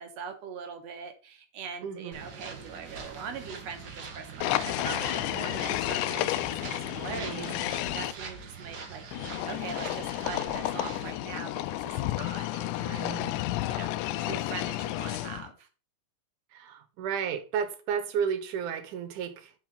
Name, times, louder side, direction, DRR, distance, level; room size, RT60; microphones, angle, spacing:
voice 1, 0.0-9.0 9.5-13.3 13.7-13.9 14.2-15.7, right 6 dB, 65° right, 2.1 m, -42 dB
voice 2, 1.8-2.2 7.1-7.7 12.8-13.4 16.5-19.5, right 7 dB, 80° right, 2.6 m, -33 dB
sound 1, 2.1-11.1, right 5 dB, 50° right, 1.3 m, -43 dB
sound 2, 4.4-8.1 9.1-15.5, left 15 dB, 85° left, 2.0 m, -31 dB
10.5 x 5.4 x 4.0 m
omnidirectional pair, 3.5 m